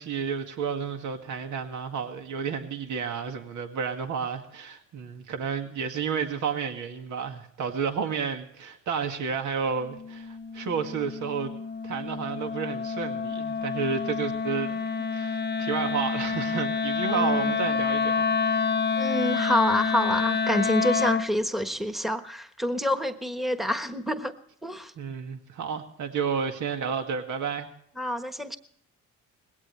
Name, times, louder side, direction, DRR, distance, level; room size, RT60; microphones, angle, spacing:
voice 1, 0.0-14.8 15.1-18.7 25.0-27.7, right 6 dB, 75° right, 5 dB, 2.0 m, -31 dB
Wind instrument woodwind instrument, 9.8-21.3, left 5 dB, 35° left, 0.8 m, -28 dB
voice 2, 17.1-17.7 18.9-24.3 24.6-24.9 28.0-28.6, equal, ahead, 8 dB, 1.3 m, -27 dB
20.0 x 17.0 x 3.3 m, 0.66 s
cardioid pair, 90°, 30 cm